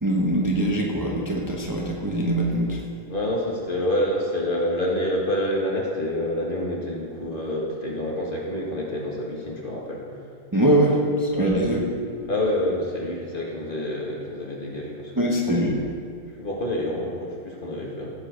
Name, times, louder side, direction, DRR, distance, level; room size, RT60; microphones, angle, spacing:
voice 1, 0.0-2.8 10.5-11.8 15.2-15.8, right 1 dB, 15° right, -2 dB, 1.1 m, -22 dB
voice 2, 3.1-10.0 11.3-11.8 12.3-15.6 16.4-18.1, left 1 dB, 40° left, -3 dB, 2.0 m, -27 dB
17.0 x 7.5 x 5.2 m, 2.3 s
omnidirectional pair, 1.4 m